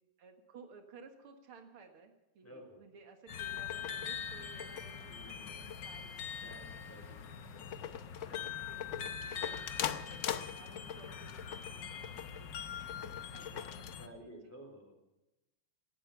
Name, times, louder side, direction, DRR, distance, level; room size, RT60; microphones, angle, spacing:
voice 1, 0.2-6.1 6.5-6.8 7.9-8.0 8.4-9.6 10.4-12.5 13.0-14.5, right 4 dB, 85° right, 5 dB, 2.6 m, -57 dB
voice 2, 2.4-2.8 5.1-5.8 6.4-9.1 14.0-14.9, equal, 5° left, 2 dB, 3.8 m, -55 dB
sound 1, 3.3-14.1, left 7 dB, 60° left, 1.7 m, -43 dB
sound 2, 3.4-13.9, left 9 dB, 85° left, 0.6 m, -43 dB
18.0 x 13.0 x 5.7 m, 0.95 s
omnidirectional pair, 2.3 m